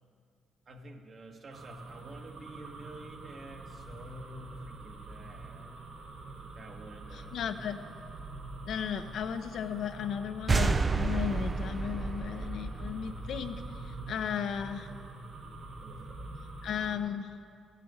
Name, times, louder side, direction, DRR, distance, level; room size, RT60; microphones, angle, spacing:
voice 1, 0.7-5.7 6.6-7.5 15.8-16.1, right 1 dB, 45° right, 2 dB, 1.6 m, -48 dB
sound 1, 1.5-17.0, right 2 dB, 75° right, 2.4 m, -45 dB
voice 2, 7.1-7.8 8.7-14.9 16.6-17.3, left 8 dB, 70° left, 8 dB, 0.8 m, -35 dB
bassy hit(anvil), 10.5-14.0, right 4 dB, 25° right, 0.5 m, -31 dB
14.0 x 7.6 x 8.7 m, 2.2 s
cardioid pair, 90°, 0 cm